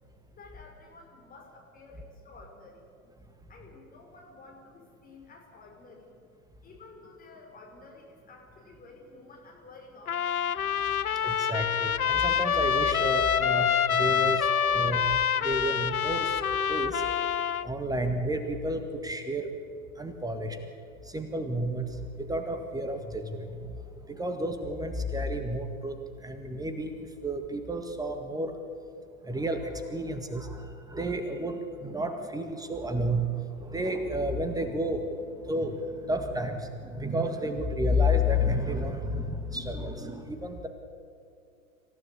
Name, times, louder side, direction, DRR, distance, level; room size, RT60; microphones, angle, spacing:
voice 1, 0.3-2.9 3.5-6.1 6.6-10.3, left 3 dB, 20° left, 0 dB, 5.4 m, -51 dB
Trumpet, 10.1-17.7, left 8 dB, 80° left, 0.8 m, -26 dB
voice 2, 11.2-16.4 16.7-17.0 17.6-19.5 20.0-20.6 21.0-23.7 24.1-26.9 27.2-28.5 29.2-35.1 35.4-40.7, equal, 10° right, 6 dB, 1.7 m, -31 dB
26.0 x 15.5 x 8.6 m, 2.5 s
figure-of-eight pair, 100°, 43 cm